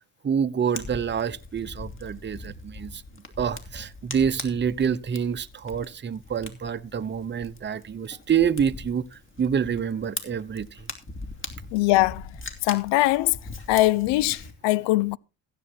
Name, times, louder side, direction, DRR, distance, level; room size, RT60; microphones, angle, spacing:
voice 1, 0.2-3.0 3.4-10.9, right 7 dB, 25° right, 0.9 m, -27 dB
Fire, 0.7-14.5, left 3 dB, 30° left, 3.2 m, -41 dB
voice 2, 11.7-12.2 12.6-13.4 13.7-15.2, left 17 dB, 75° left, 0.7 m, -21 dB
15.0 x 8.0 x 4.4 m
supercardioid pair, 80°, 43 cm